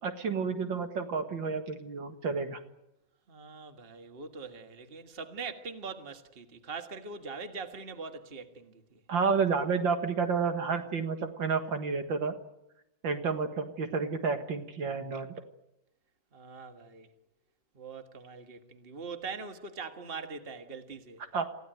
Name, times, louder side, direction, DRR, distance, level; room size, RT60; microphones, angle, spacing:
voice 1, 0.0-2.6 9.1-12.3 13.0-15.3 21.3-21.5, right 5 dB, 70° right, 2.4 m, -30 dB
voice 2, 3.3-9.0 16.3-17.1 17.8-21.2, right 4 dB, 30° right, 1.8 m, -42 dB
27.5 x 16.0 x 9.3 m
omnidirectional pair, 2.2 m